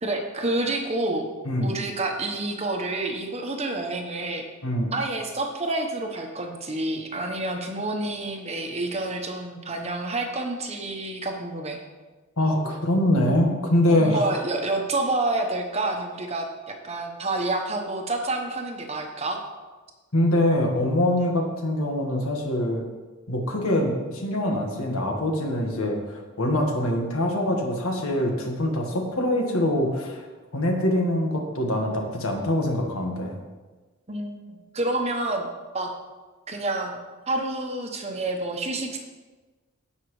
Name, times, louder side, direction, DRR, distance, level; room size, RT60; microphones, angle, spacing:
voice 1, 0.0-1.3 1.6-4.5 4.9-11.8 13.9-19.4 34.1-35.5 35.7-35.9 36.5-37.0 37.3-39.0, right 2 dB, 30° right, 3 dB, 1.0 m, -28 dB
voice 2, 1.4-1.8 4.6-4.9 12.4-14.3 20.1-22.8 23.3-30.2 30.5-33.4, left 1 dB, 85° left, 2 dB, 1.6 m, -24 dB
16.0 x 5.6 x 3.2 m, 1.3 s
head